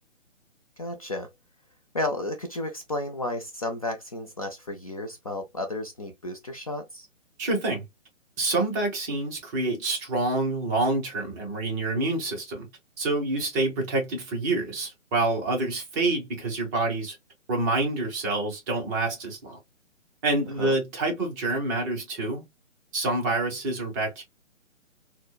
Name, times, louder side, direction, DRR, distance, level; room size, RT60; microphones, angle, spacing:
voice 1, 0.8-1.3 1.9-7.1 20.6-20.8, left 2 dB, 30° left, 0.4 m, -32 dB
voice 2, 7.4-7.8 8.4-12.7 13.0-17.2 17.5-19.6 20.2-22.4 22.9-24.2, right 2 dB, 15° right, 0.7 m, -27 dB
4.1 x 2.1 x 2.3 m
figure-of-eight pair, 135°, 38 cm